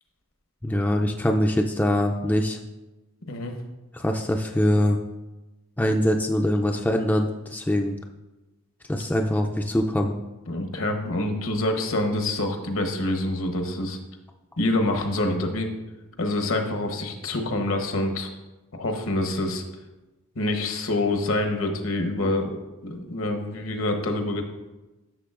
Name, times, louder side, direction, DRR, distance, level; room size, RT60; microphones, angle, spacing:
voice 1, 0.6-2.6 3.9-5.0 5.8-8.0 8.9-10.1, left 1 dB, 10° left, 3 dB, 0.3 m, -23 dB
voice 2, 10.5-14.0 14.6-15.7 16.2-18.3 18.7-19.6 20.4-24.4, left 1 dB, 70° left, 5 dB, 1.0 m, -26 dB
11.5 x 6.8 x 2.5 m, 1.1 s
head